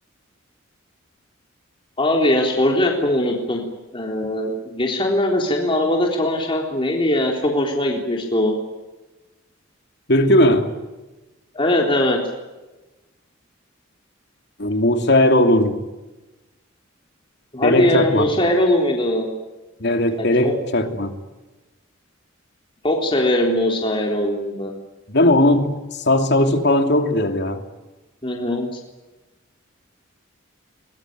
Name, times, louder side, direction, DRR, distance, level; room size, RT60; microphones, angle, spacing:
voice 1, 2.0-3.6 3.9-8.5 11.5-12.2 17.5-19.3 20.4-20.5 22.8-24.7 28.2-28.8, left 1 dB, 25° left, 1 dB, 3.7 m, -20 dB
voice 2, 10.1-10.7 14.6-15.8 17.6-18.2 19.8-21.1 25.1-25.7 26.0-27.6, left 1 dB, 55° left, 6 dB, 2.9 m, -17 dB
22.5 x 22.0 x 9.4 m, 1.1 s
head